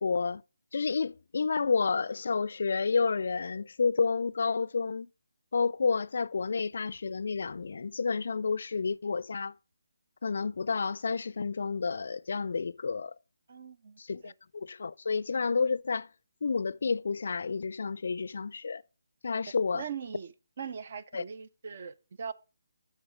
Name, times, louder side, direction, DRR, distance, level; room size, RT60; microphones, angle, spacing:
voice 1, 0.0-0.4 0.7-5.1 5.5-9.5 10.2-13.1 14.0-16.1 16.4-18.8 19.2-19.8 21.1-21.2, left 5 dB, 55° left, 0.4 m, -30 dB
voice 2, 13.5-14.3 19.7-22.3, right 7 dB, 45° right, 0.6 m, -41 dB
12.5 x 4.3 x 5.0 m
figure-of-eight pair, 150°, 0 cm